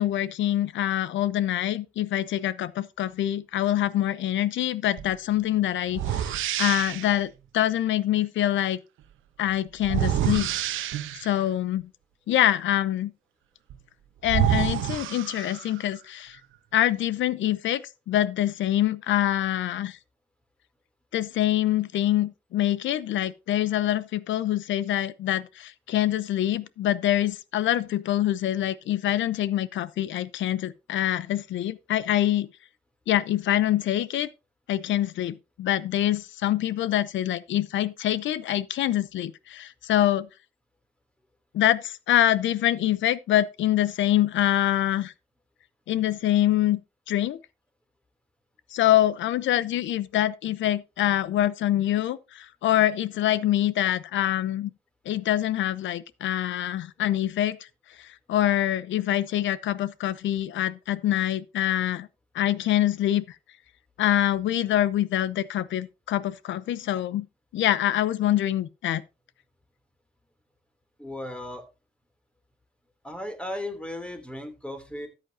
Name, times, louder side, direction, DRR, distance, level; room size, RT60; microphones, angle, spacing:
voice 1, 0.0-6.3 6.6-8.8 9.4-10.5 11.2-11.9 12.3-13.1 14.2-16.4 16.7-20.0 21.1-32.5 33.1-34.3 34.7-40.3 41.5-45.1 45.9-46.8 47.1-47.4 48.7-54.7 55.1-57.7 58.0-62.1 62.3-63.4 64.0-67.3 67.5-69.0, left 12 dB, 75° left, 0.7 m, -25 dB
sound 1, 5.0-5.1 5.9-7.2 9.8-11.4 13.7-13.8 14.2-15.9, right 10 dB, 80° right, 1.0 m, -27 dB
voice 2, 71.0-71.6 73.0-75.1, left 1 dB, 5° left, 3.0 m, -36 dB
13.0 x 8.6 x 2.7 m
cardioid pair, 90°, 20 cm